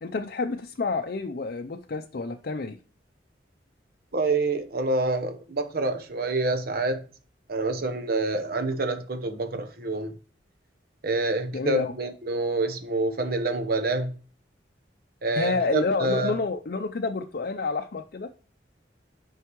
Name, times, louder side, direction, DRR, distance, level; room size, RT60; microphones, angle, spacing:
voice 1, 0.0-2.8 11.5-11.9 15.4-18.3, left 3 dB, 55° left, 0.5 m, -29 dB
voice 2, 4.1-7.0 7.5-10.1 11.0-14.1 15.2-16.3, right 2 dB, 55° right, 0.9 m, -27 dB
9.2 x 5.5 x 3.1 m
head